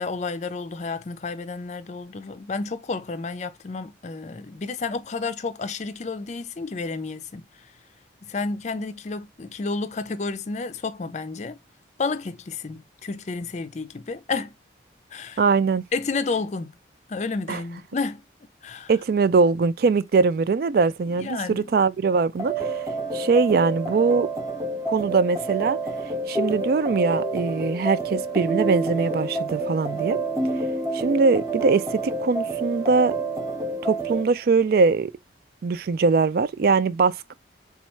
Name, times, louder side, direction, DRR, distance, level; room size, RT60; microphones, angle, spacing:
voice 1, 0.0-7.4 8.3-11.6 12.0-14.5 15.1-15.4 15.9-16.8 17.1-18.2 18.6-18.9 21.2-21.7, left 4 dB, 40° left, 0.4 m, -31 dB
voice 2, 15.4-15.8 17.5-17.6 18.9-22.9 23.1-24.3 24.9-25.8 26.3-30.2 30.9-33.1 33.8-35.1 35.6-37.3, right 4 dB, 55° right, 0.3 m, -22 dB
sound 1, 22.4-34.3, right 2 dB, 20° right, 0.8 m, -28 dB
4.2 x 2.4 x 4.3 m
head